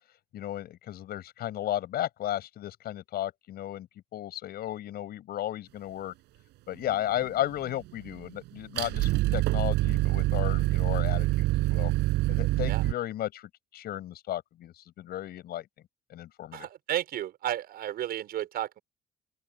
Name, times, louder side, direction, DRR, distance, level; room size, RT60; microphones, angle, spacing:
voice 1, 0.3-6.1 6.7-11.9 12.3-15.7 16.1-16.7, left 13 dB, 65° left, 7.8 m, -34 dB
sound 1, 6.9-7.8 8.1-12.9, right 19 dB, 90° right, 6.9 m, -26 dB
voice 2, 16.5-18.8, right 12 dB, 65° right, 5.7 m, -33 dB
open air
cardioid pair, 110°, 17 cm